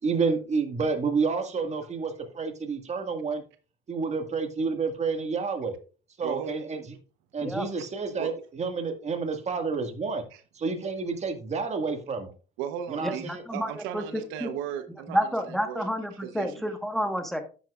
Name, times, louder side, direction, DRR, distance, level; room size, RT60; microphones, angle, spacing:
voice 1, 0.0-3.4 3.9-5.7 6.2-6.9 7.3-10.2 10.5-12.3 12.9-13.4, right 4 dB, 35° right, 1.8 m, -29 dB
voice 2, 6.2-6.5 8.2-8.3 12.6-15.9 16.2-16.6, right 9 dB, 85° right, 1.0 m, -36 dB
voice 3, 13.0-14.0 14.4-14.5 15.1-17.4, equal, ahead, 1.3 m, -29 dB
10.0 x 9.1 x 2.4 m
supercardioid pair, 95°, 20 cm